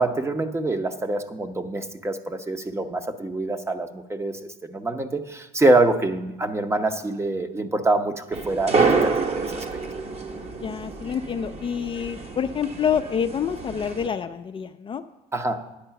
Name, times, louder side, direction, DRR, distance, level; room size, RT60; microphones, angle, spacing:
voice 1, 0.0-9.6 15.3-15.7, right 2 dB, 15° right, 8 dB, 0.7 m, -25 dB
sound 1, 8.3-14.1, right 4 dB, 40° right, 1.1 m, -27 dB
voice 2, 10.6-15.0, left 7 dB, 30° left, 7 dB, 0.4 m, -27 dB
10.0 x 8.0 x 5.7 m, 0.98 s
cardioid pair, 110°, 17 cm